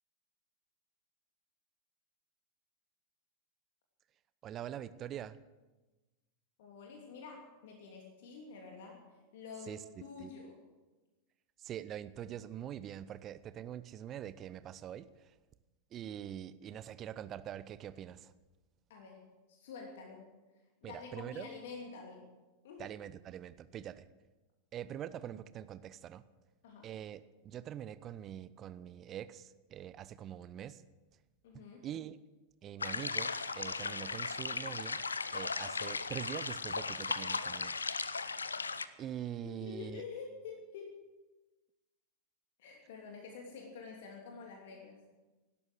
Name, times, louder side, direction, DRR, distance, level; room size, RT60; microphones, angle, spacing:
voice 1, 4.4-5.4 9.7-9.8 10.2-10.3 11.6-15.3 15.9-18.3 20.8-21.5 22.8-24.1 24.7-26.2 26.8-30.8 31.5-32.2 32.6-35.0 35.3-37.7 39.0-40.0, right 10 dB, 30° right, 15 dB, 0.8 m, -44 dB
voice 2, 6.6-9.0 9.3-10.6 18.9-20.3 20.8-22.3 22.6-22.8 26.6-26.9 31.4-31.9 39.4-41.0 42.6-45.0, left 5 dB, 55° left, 1 dB, 2.9 m, -48 dB
sound 1, 32.8-38.9, left 4 dB, 75° left, 0.7 m, -37 dB
17.5 x 12.5 x 6.3 m, 1.1 s
figure-of-eight pair, 90°, 0 cm